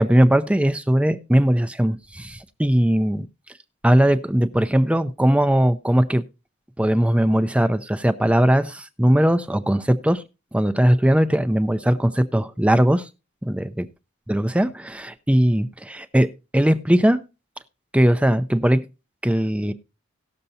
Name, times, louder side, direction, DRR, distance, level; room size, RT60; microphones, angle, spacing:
voice 1, 0.0-3.3 3.8-6.2 6.8-10.2 10.5-13.1 13.4-13.9 14.3-16.3 16.5-17.2 17.9-18.8 19.2-19.7, equal, 5° right, 0.5 m, -19 dB
18.0 x 6.7 x 2.7 m
head